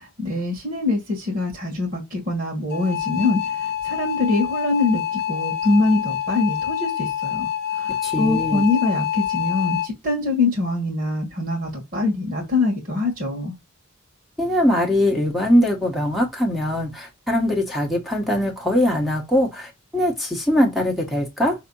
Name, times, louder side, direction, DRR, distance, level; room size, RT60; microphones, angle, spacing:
voice 1, 0.2-7.5 7.7-13.5, left 2 dB, 40° right, 1.7 m, -23 dB
sound 1, 2.7-9.9, left 10 dB, 45° left, 0.7 m, -26 dB
voice 2, 8.0-8.6 14.4-21.5, left 1 dB, ahead, 1.3 m, -21 dB
5.9 x 2.9 x 5.5 m
head